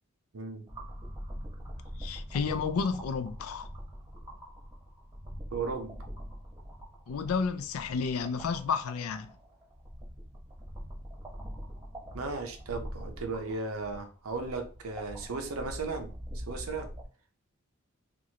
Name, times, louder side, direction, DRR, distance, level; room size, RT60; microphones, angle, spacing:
voice 1, 0.3-0.7 5.5-6.0 12.1-16.1 16.5-16.9, right 3 dB, 90° right, 0.7 m, -36 dB
sound 1, 0.7-17.0, equal, 15° right, 0.8 m, -44 dB
voice 2, 2.0-3.7 7.1-9.3, left 5 dB, 85° left, 0.4 m, -31 dB
3.0 x 2.5 x 2.8 m
head